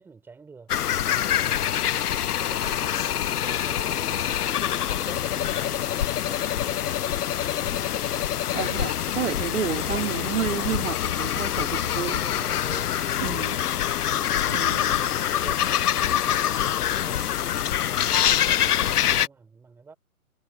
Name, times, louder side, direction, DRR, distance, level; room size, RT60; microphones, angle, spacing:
voice 1, 0.0-2.0 2.4-7.9 9.8-10.2 12.1-14.5 14.8-17.4 17.8-20.0, right 4 dB, 5° right, 4.3 m, -47 dB
sound 1, 0.7-19.3, left 11 dB, 80° left, 0.6 m, -25 dB
voice 2, 8.5-12.2 13.2-13.6 14.5-14.9, right 7 dB, 55° right, 3.2 m, -30 dB
hypercardioid pair, 160°, 45 cm